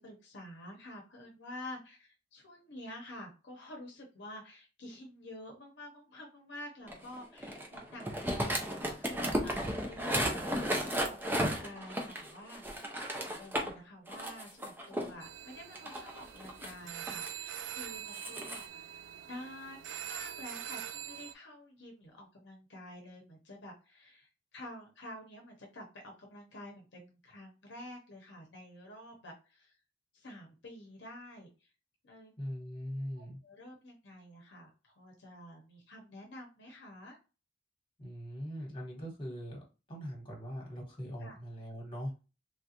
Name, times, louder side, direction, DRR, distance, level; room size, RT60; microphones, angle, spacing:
voice 1, 0.0-18.9 19.2-29.8 30.1-31.7 32.0-32.4 33.1-37.2 41.2-41.4, left 1 dB, 65° left, 0 dB, 0.7 m, -49 dB
sound 1, 6.9-13.7 14.1-15.1 15.7-17.3 17.9-18.6, equal, 10° right, 0.4 m, -34 dB
sound 2, 15.2-21.3, right 10 dB, 80° right, 0.3 m, -44 dB
voice 2, 32.4-33.4 38.0-39.6 39.9-42.1, equal, 30° left, -2 dB, 1.3 m, -41 dB
3.2 x 2.4 x 2.8 m, 0.32 s
head